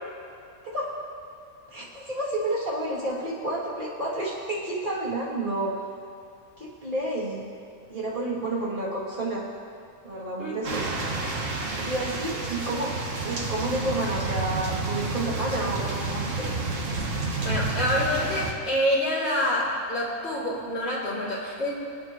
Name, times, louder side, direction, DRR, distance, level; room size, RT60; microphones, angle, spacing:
voice 1, 0.6-1.0 1.7-5.8 6.6-7.5 7.9-9.4 10.0-10.9 11.8-16.5, right 1 dB, 30° right, -7 dB, 3.1 m, -30 dB
sound 1, 10.6-18.5, right 3 dB, 60° right, 1.7 m, -30 dB
voice 2, 17.4-21.7, left 1 dB, 45° left, -8 dB, 3.3 m, -27 dB
26.0 x 9.1 x 3.1 m, 2.6 s
omnidirectional pair, 1.6 m